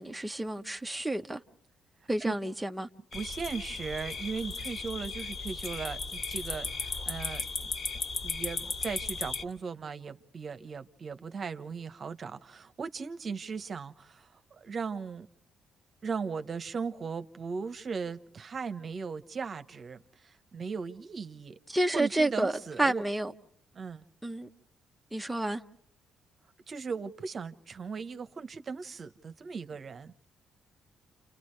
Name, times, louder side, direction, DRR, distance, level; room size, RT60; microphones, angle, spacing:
voice 1, 0.0-1.4 2.1-2.9 21.7-23.3 24.2-24.5 25.1-25.6, right 1 dB, 5° right, 0.9 m, -30 dB
sound 1, 3.1-9.4, left 4 dB, 50° left, 2.4 m, -36 dB
voice 2, 3.1-7.7 8.2-15.3 16.0-21.6 21.9-23.0 23.7-24.0 26.7-30.1, right 5 dB, 45° right, 1.0 m, -38 dB
29.5 x 29.0 x 3.3 m
cardioid pair, 90°, 0 cm